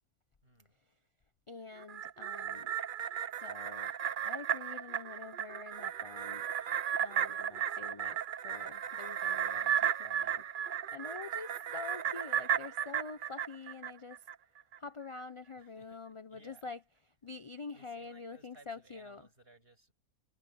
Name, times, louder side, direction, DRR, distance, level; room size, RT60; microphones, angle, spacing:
voice 1, 0.4-0.8 15.6-16.0 16.3-16.7 17.7-19.9, right 2 dB, 40° right, 7.1 m, -61 dB
voice 2, 1.5-2.7 3.4-3.9 4.2-6.5 7.0-10.5 10.9-14.3 14.8-16.8 17.2-19.3, left 4 dB, 35° left, 0.5 m, -46 dB
sound 1, 1.8-14.3 14.7-14.8, right 9 dB, 55° right, 0.6 m, -35 dB
omnidirectional pair, 1.5 m